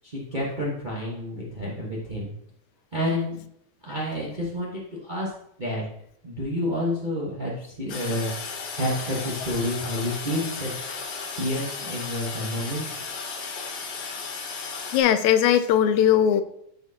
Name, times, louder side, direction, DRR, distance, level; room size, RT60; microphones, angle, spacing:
voice 1, 0.0-2.3 2.9-3.4 3.8-5.3 5.6-5.8 6.2-8.3 8.7-11.0 11.4-13.0, left 1 dB, 85° right, -4 dB, 0.4 m, -29 dB
Toilet flush, 7.9-15.0, left 4 dB, 60° left, 1.6 m, -34 dB
voice 2, 14.9-16.4, left 10 dB, 80° left, 10 dB, 1.8 m, -19 dB
12.5 x 4.3 x 2.8 m, 0.71 s
omnidirectional pair, 3.4 m